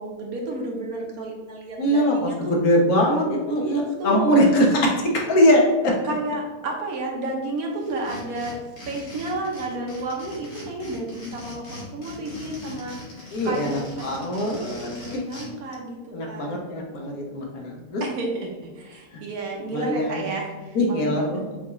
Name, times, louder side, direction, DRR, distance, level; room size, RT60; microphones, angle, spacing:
voice 1, 0.0-2.6 3.7-4.6 6.0-8.6 8.9-16.6 18.0-21.6, right 2 dB, 70° right, 0 dB, 1.3 m, -32 dB
voice 2, 1.8-5.9 13.3-15.2 16.1-18.0 19.7-20.2 20.7-21.5, equal, 70° left, 0 dB, 1.4 m, -22 dB
sound 1, 7.8-15.5, left 1 dB, 90° left, 2.0 m, -41 dB
6.3 x 2.4 x 3.1 m, 1.2 s
omnidirectional pair, 1.6 m